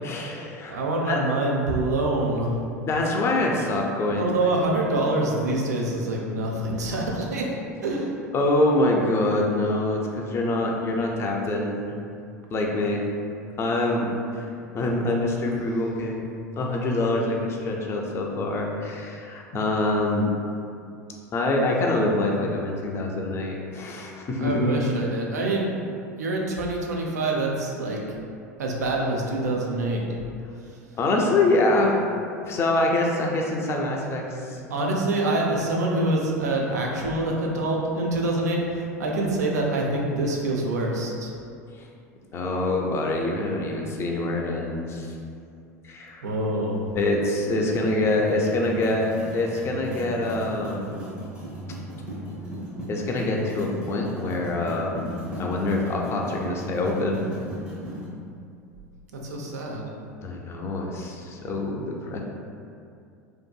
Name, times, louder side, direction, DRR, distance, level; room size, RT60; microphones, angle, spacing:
voice 1, 0.0-0.8 1.0-1.2 2.9-4.3 8.3-11.9 12.5-13.0 13.6-14.1 14.4-14.5 14.7-16.2 16.6-20.3 21.3-24.8 31.0-32.0 32.4-34.6 41.8-41.9 42.3-45.2 45.8-46.3 46.9-51.0 52.9-55.1 55.4-57.2 60.2-62.2, left 2 dB, 30° left, 0 dB, 0.4 m, -25 dB
voice 2, 0.7-2.6 4.2-7.5 7.8-8.1 24.4-25.8 26.2-28.0 28.6-30.1 34.7-41.3 46.2-46.8 59.1-59.9, right 2 dB, 80° right, -1 dB, 0.4 m, -25 dB
sound 1, 47.6-58.1, equal, 15° right, 0.6 m, -37 dB
2.6 x 2.5 x 2.2 m, 2.5 s
hypercardioid pair, 80°, 9 cm